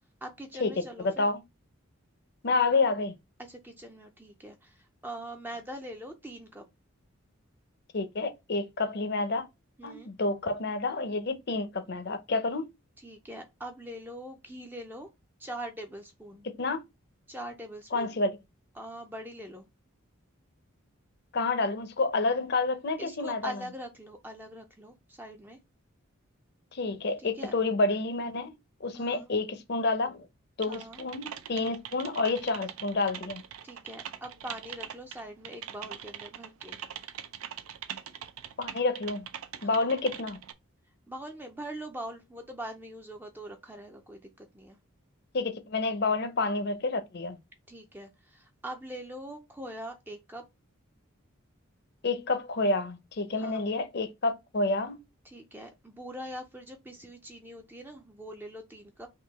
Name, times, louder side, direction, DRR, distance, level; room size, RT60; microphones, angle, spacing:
voice 1, 0.2-1.3 3.4-6.6 9.8-10.1 13.0-15.1 15.4-16.5 17.3-18.2 18.8-19.7 23.0-25.6 27.2-27.5 28.9-29.3 30.7-31.0 33.6-36.8 39.6-39.9 41.1-44.8 47.7-50.4 53.4-53.6 55.2-59.1, right 1 dB, 10° right, 0.4 m, -42 dB
voice 2, 2.4-3.1 7.9-9.5 9.8-12.7 16.6-16.8 17.9-18.3 21.3-23.4 26.7-28.5 28.8-30.3 30.6-33.4 38.6-39.3 39.6-40.4 45.3-47.4 52.0-55.0, left 3 dB, 50° left, 0.6 m, -29 dB
Typing, 30.6-40.5, right 9 dB, 80° right, 0.5 m, -42 dB
3.7 x 2.7 x 4.0 m
head